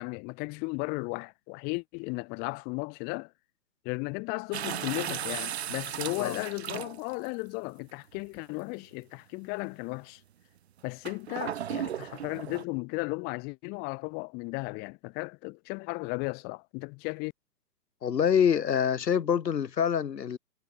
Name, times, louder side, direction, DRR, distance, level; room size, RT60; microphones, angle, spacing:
voice 1, 0.0-3.3 3.8-10.2 10.8-17.3, left 30 dB, 20° left, 1.5 m, -35 dB
sound 1, 4.5-7.3 8.1-8.2 11.1-12.6, right 10 dB, 40° right, 0.6 m, -35 dB
voice 2, 18.0-20.4, left 8 dB, 80° left, 1.6 m, -25 dB
hypercardioid pair, 150°, 49 cm